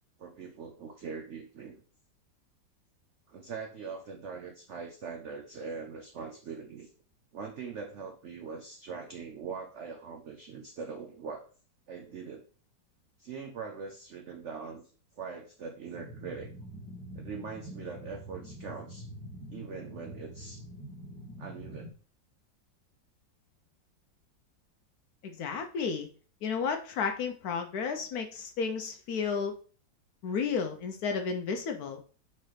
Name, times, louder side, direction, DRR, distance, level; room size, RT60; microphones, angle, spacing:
voice 1, 0.2-1.8 3.3-6.9 7.3-11.5 11.9-12.4 13.2-14.8 15.2-16.5 17.1-19.1 19.5-20.6 21.4-21.9, right 5 dB, 85° right, 4 dB, 0.6 m, -42 dB
sound 1, 15.9-21.9, equal, 5° left, 1.1 m, -45 dB
voice 2, 25.2-26.1 26.4-29.5 30.2-32.0, left 5 dB, 70° left, 6 dB, 1.0 m, -32 dB
4.2 x 3.8 x 3.1 m, 0.39 s
omnidirectional pair, 2.0 m